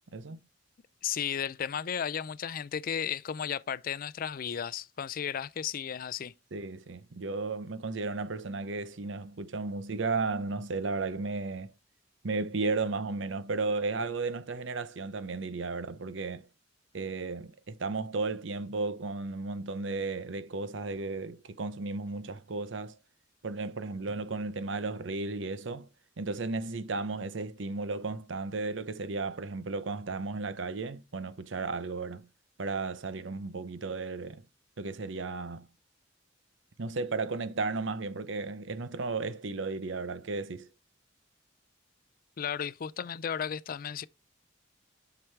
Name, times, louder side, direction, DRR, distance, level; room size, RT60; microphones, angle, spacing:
voice 1, 1.0-6.3 42.4-44.1, left 8 dB, 50° left, 0.4 m, -34 dB
voice 2, 6.5-11.7 12.2-16.5 16.9-23.0 23.4-25.9 26.2-32.3 32.6-34.4 34.8-35.7 36.8-40.7, right 3 dB, 70° right, 0.7 m, -34 dB
7.7 x 6.0 x 3.3 m
head